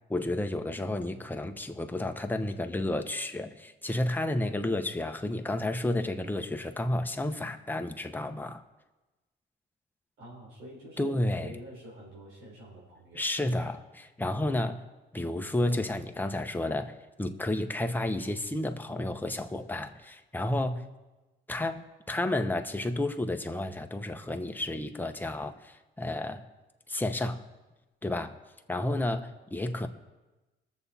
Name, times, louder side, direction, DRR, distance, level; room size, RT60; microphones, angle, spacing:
voice 1, 0.1-8.6 11.0-11.6 13.1-14.8 15.1-20.8 21.5-26.4 26.9-27.4 28.0-28.3 28.7-29.9, left 1 dB, 10° left, 6 dB, 0.9 m, -31 dB
voice 2, 10.2-13.2, right 1 dB, 85° right, -6 dB, 4.0 m, -47 dB
20.5 x 7.1 x 4.2 m, 1.1 s
cardioid pair, 90°, 20 cm